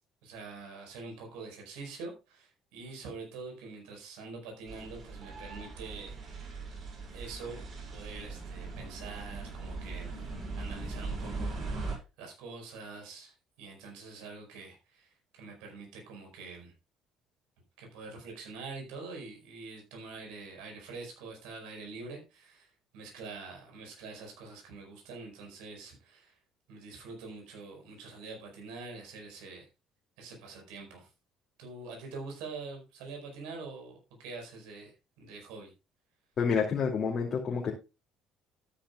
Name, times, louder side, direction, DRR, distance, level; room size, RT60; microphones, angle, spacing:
voice 1, 0.2-6.6 7.1-7.6 7.9-10.1 10.6-16.7 17.8-26.3 26.7-29.6 30.2-31.1 31.6-35.7, right 4 dB, 75° right, 2 dB, 5.0 m, -45 dB
sound 1, 4.7-12.0, right 3 dB, 50° right, 7.2 m, -40 dB
voice 2, 36.4-37.7, left 6 dB, 50° left, -2 dB, 2.6 m, -28 dB
13.0 x 10.0 x 2.4 m, 0.28 s
hypercardioid pair, 55°, 0 cm